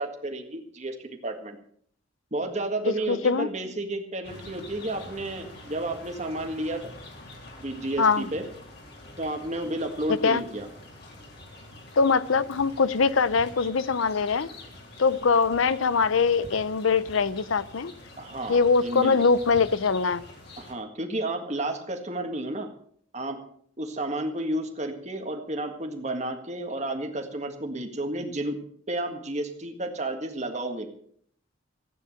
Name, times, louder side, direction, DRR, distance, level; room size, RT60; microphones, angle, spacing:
voice 1, 0.0-1.6 2.3-6.9 7.6-8.4 9.2-10.7 18.2-19.2 20.6-22.7 23.1-23.4 23.8-28.6 28.9-30.9, right 1 dB, 35° right, 1.8 m, -31 dB
voice 2, 2.9-3.5 8.0-8.3 10.2-10.4 12.0-14.5 15.0-17.9 18.5-20.2, left 5 dB, 90° left, 0.6 m, -22 dB
sound 1, 4.2-20.7, left 2 dB, 55° left, 3.4 m, -46 dB
15.5 x 9.5 x 6.4 m
head